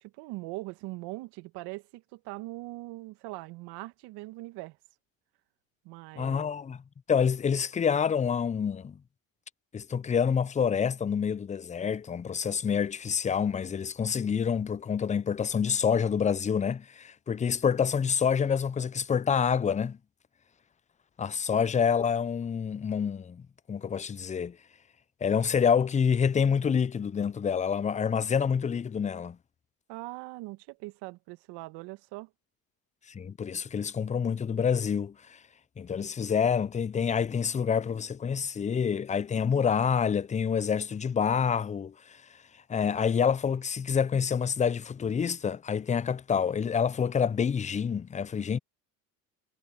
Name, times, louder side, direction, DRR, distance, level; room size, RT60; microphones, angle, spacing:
voice 1, 0.0-4.8 5.8-6.4 21.5-21.6 29.9-32.3, right 21 dB, 70° right, 1.5 m, -41 dB
voice 2, 6.2-6.8 7.1-9.0 9.7-20.0 21.2-23.4 23.7-24.6 25.2-29.4 33.1-35.4 35.8-42.2 42.7-48.6, left 7 dB, 15° left, 0.5 m, -27 dB
hypercardioid pair, 70°, 42 cm